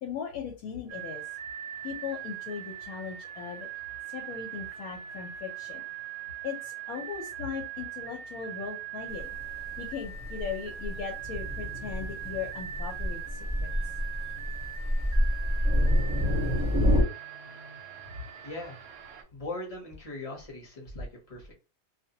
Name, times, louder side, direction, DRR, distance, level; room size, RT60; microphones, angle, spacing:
voice 1, 0.0-1.2 1.8-3.7 4.1-5.8 6.4-9.3 9.8-13.7, left 6 dB, 85° left, 1 dB, 1.1 m, -38 dB
sound 1, 0.9-19.2, right 10 dB, 65° right, 0.7 m, -41 dB
Thunder, 9.1-17.0, equal, 20° right, 0.5 m, -28 dB
voice 2, 18.4-18.8 19.3-21.5, left 2 dB, 30° left, -1 dB, 0.7 m, -39 dB
2.4 x 2.0 x 2.7 m, 0.31 s
omnidirectional pair, 1.5 m